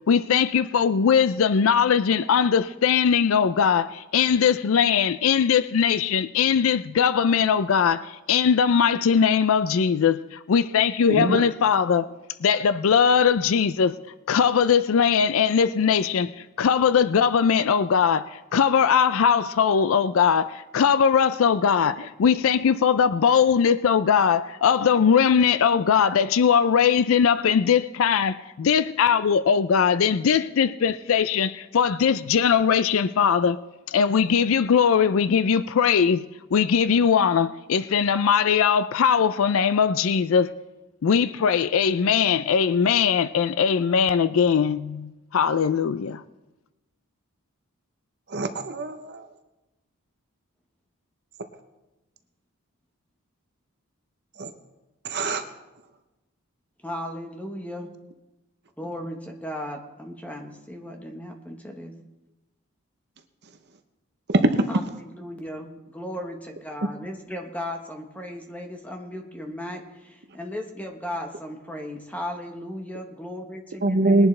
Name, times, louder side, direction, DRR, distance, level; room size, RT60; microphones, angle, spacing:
voice 1, 0.1-12.0 12.4-13.9 14.3-33.6 33.9-36.2 36.5-40.5 41.0-46.2, left 7 dB, 70° left, 14 dB, 0.4 m, -20 dB
voice 2, 11.1-11.4 48.3-49.3 54.4-54.5 55.0-55.4 64.3-64.5 73.8-74.3, right 2 dB, 50° right, 8 dB, 0.8 m, -22 dB
voice 3, 56.8-57.9 58.8-61.9 64.7-74.3, left 1 dB, 5° left, 2 dB, 1.1 m, -36 dB
20.5 x 11.0 x 3.3 m, 1.0 s
head